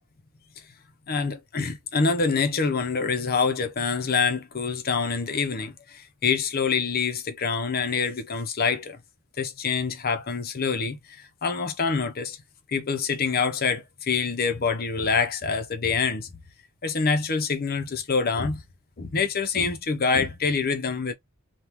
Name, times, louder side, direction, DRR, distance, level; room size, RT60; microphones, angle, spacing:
voice 1, 1.1-9.0 9.4-12.4 12.7-16.3 16.8-18.6 19.0-21.1, left 5 dB, 45° left, 0.7 m, -26 dB
3.5 x 2.4 x 4.3 m
head